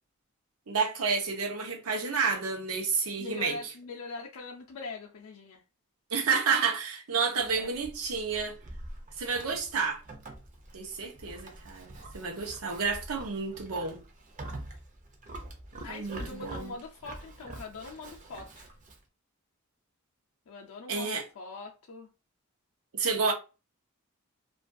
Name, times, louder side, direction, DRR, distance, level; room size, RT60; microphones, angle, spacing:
voice 1, 0.7-3.6 6.1-8.6 9.2-10.0 10.7-14.0 15.9-16.7 20.9-21.2 22.9-23.3, right 5 dB, 85° right, 0.7 m, -30 dB
voice 2, 3.2-5.6 7.5-7.7 15.8-18.7 20.5-22.1, left 3 dB, 75° left, 0.4 m, -42 dB
Livestock farm animals working animals, 7.4-19.0, right 1 dB, 35° right, 0.5 m, -45 dB
2.4 x 2.3 x 2.5 m
head